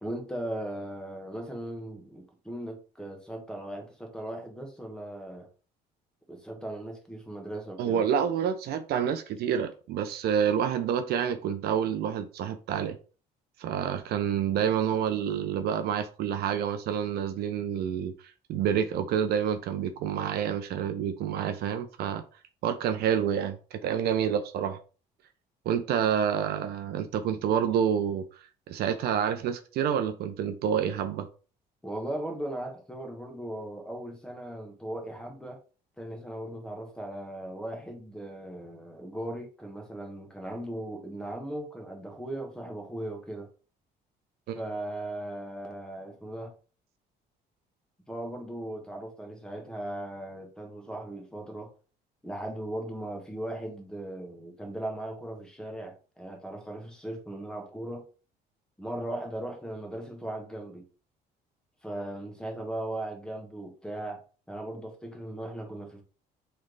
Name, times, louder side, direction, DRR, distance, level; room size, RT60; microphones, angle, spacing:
voice 1, 0.0-5.5 6.3-8.0 31.8-35.6 36.0-43.5 44.5-46.5 48.1-51.7 52.2-58.1 58.8-60.9 61.8-66.0, right 1 dB, 5° left, 1.2 m, -38 dB
voice 2, 7.8-13.0 13.6-18.1 18.5-22.2 22.6-24.8 25.7-28.2 28.7-31.3 44.5-44.6, right 8 dB, 70° right, 0.6 m, -28 dB
3.2 x 3.1 x 3.9 m
cardioid pair, 110°, 17 cm